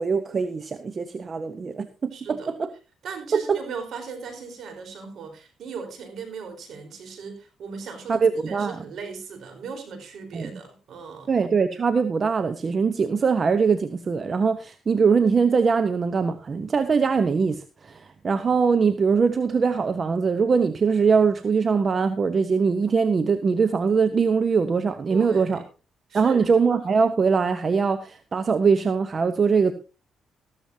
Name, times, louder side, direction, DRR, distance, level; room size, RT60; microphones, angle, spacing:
voice 1, 0.0-2.7 3.3-3.6 8.1-8.8 10.3-10.6 11.3-25.6 26.1-29.7, right 5 dB, 40° right, 10 dB, 1.0 m, -22 dB
voice 2, 2.1-2.5 3.0-11.3 25.1-25.6 26.1-26.5, right 5 dB, 65° right, 6 dB, 4.4 m, -37 dB
14.0 x 13.5 x 2.8 m, 0.32 s
cardioid pair, 90°, 0 cm